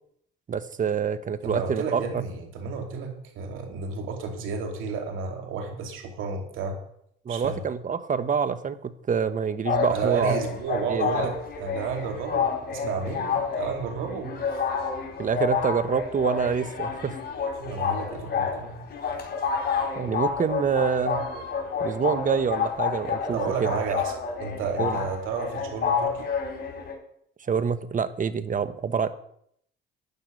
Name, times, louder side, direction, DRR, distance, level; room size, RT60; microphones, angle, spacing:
voice 1, 0.5-2.2 7.2-10.4 10.9-11.3 15.2-17.2 20.0-21.3 21.8-23.7 24.8-25.0 27.5-29.1, right 6 dB, 40° right, 12 dB, 1.1 m, -26 dB
voice 2, 1.4-6.8 7.3-7.6 9.9-14.6 17.6-18.7 23.3-24.1 24.4-26.3, right 5 dB, 85° right, 2 dB, 2.7 m, -32 dB
sound 1, 9.6-26.9, left 6 dB, 55° left, 4.2 m, -29 dB
12.0 x 9.6 x 5.3 m, 0.69 s
cardioid pair, 90°, 20 cm